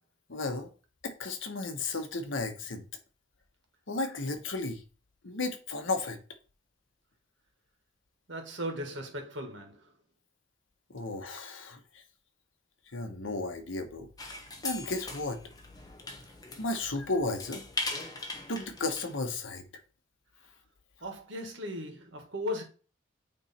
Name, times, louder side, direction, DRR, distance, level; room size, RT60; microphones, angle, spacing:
voice 1, 0.3-0.7 1.0-2.8 3.9-4.8 5.2-6.2 10.9-12.0 12.9-14.1 14.6-15.4 16.6-17.6 18.5-19.6, left 3 dB, 80° left, 1.1 m, -34 dB
voice 2, 8.3-9.8 21.0-22.6, left 1 dB, 70° right, 1.6 m, -37 dB
sound 1, 14.2-19.2, left 3 dB, 20° left, 0.9 m, -40 dB
8.7 x 3.1 x 4.3 m
head